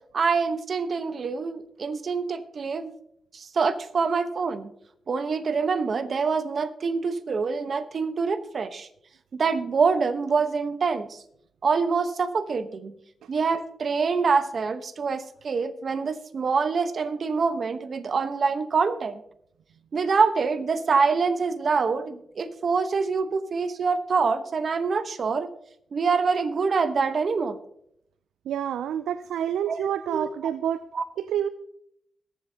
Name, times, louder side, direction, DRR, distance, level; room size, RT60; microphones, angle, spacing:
voice 1, 0.1-2.9 3.3-4.7 5.1-8.9 9.3-11.2 11.6-13.0 13.3-19.2 19.9-25.5 25.9-27.6 29.7-29.8 30.1-30.3 30.9-31.0, right 5 dB, 60° right, 11 dB, 1.0 m, -25 dB
voice 2, 28.5-30.8 31.2-31.5, right 9 dB, 90° right, 14 dB, 0.3 m, -28 dB
22.0 x 7.6 x 2.8 m, 0.72 s
cardioid pair, 55°, 0 cm